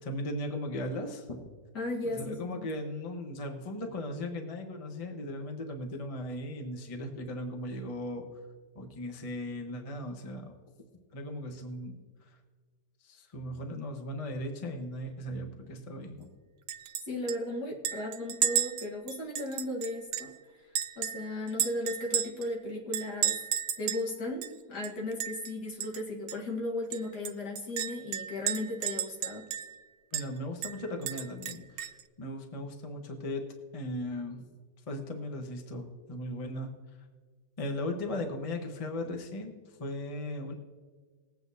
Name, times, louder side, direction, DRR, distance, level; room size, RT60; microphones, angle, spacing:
voice 1, 0.0-1.5 2.1-8.2 8.7-10.5 11.1-12.4 13.0-16.3 30.1-33.4 33.7-34.4 34.9-36.7 37.6-40.5, left 1 dB, 25° left, 3 dB, 0.9 m, -37 dB
voice 2, 1.7-2.7 17.1-20.3 21.0-23.4 23.8-29.5, left 1 dB, 65° left, -1 dB, 2.1 m, -36 dB
Chink clink, 16.7-17.0 17.3-17.4 17.9-20.4 20.8-22.5 22.9-24.1 24.4-24.5 24.8-25.5 25.8-26.0 26.3-26.4 26.9-29.8 30.1-30.3 30.6-32.0, right 9 dB, 75° right, 1.2 m, -33 dB
20.5 x 8.3 x 2.7 m, 1.5 s
omnidirectional pair, 1.9 m